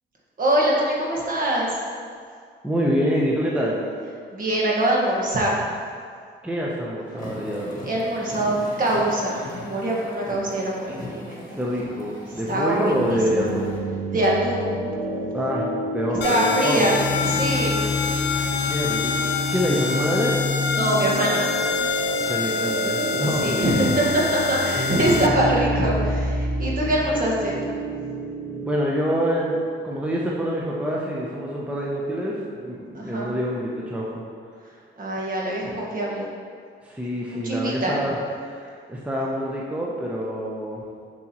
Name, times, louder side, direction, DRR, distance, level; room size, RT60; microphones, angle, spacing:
voice 1, 0.4-1.8 4.3-5.6 7.8-11.6 12.5-13.5 14.1-14.8 16.1-17.0 17.2-17.8 20.7-21.5 23.3-27.6 32.9-33.3 35.0-36.3 37.3-37.9, right 1 dB, 45° right, -3 dB, 1.6 m, -23 dB
voice 2, 2.6-3.8 6.4-7.8 10.9-13.8 15.3-15.6 15.9-17.0 18.5-20.4 22.3-23.8 28.6-34.2 36.8-38.2 38.4-40.8, equal, 5° right, -4 dB, 0.8 m, -26 dB
sound 1, 7.1-13.8, left 2 dB, 40° left, 1.6 m, -39 dB
sound 2, 12.7-28.8, left 1 dB, 15° left, 1.4 m, -28 dB
sound 3, 16.2-25.3, left 5 dB, 65° left, 0.6 m, -27 dB
6.9 x 6.2 x 3.0 m, 2.1 s
cardioid pair, 90°, 20 cm